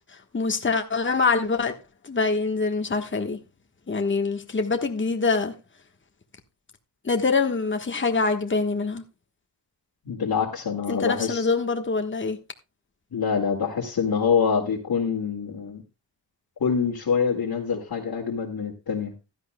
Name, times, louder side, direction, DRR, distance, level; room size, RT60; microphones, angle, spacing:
voice 1, 0.3-1.8 2.0-3.4 3.9-5.5 7.0-9.0 10.9-12.4, left 4 dB, 25° left, 1.3 m, -24 dB
voice 2, 10.0-11.5 13.1-15.8 16.6-19.1, left 6 dB, 60° left, 2.2 m, -25 dB
15.5 x 11.5 x 2.2 m
cardioid pair, 80°, 43 cm